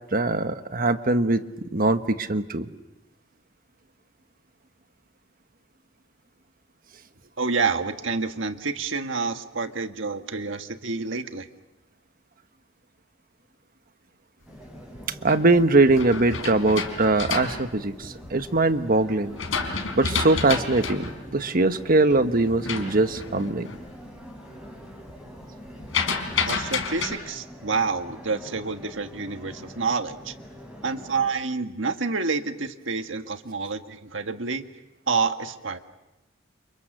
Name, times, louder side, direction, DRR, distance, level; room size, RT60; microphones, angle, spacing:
voice 1, 0.1-1.4 1.7-2.7 15.2-19.3 19.9-23.7, right 2 dB, 45° right, 9 dB, 1.3 m, -22 dB
voice 2, 7.4-11.5 26.5-30.3 30.8-34.7 35.1-35.8, right 4 dB, 65° right, 7 dB, 1.7 m, -28 dB
sound 1, 14.5-31.3, equal, 5° right, 6.1 m, -44 dB
sound 2, 14.7-18.6 19.1-23.9 24.2-24.7 24.9-27.1, left 5 dB, 75° left, 4.2 m, -30 dB
30.0 x 29.0 x 6.7 m, 1.0 s
head